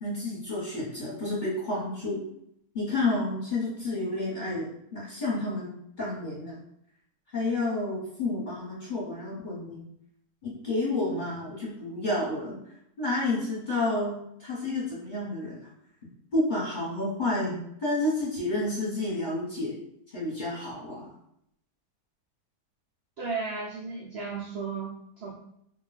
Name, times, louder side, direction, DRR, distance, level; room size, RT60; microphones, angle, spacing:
voice 1, 0.0-2.2 2.7-5.7 6.0-6.6 7.3-9.8 10.4-12.5 13.0-15.7 16.3-19.8 20.1-21.1, left 2 dB, 35° left, -7 dB, 1.1 m, -30 dB
voice 2, 23.2-25.5, right 4 dB, 85° right, -2 dB, 0.5 m, -35 dB
2.6 x 2.3 x 4.0 m, 0.73 s
omnidirectional pair, 1.7 m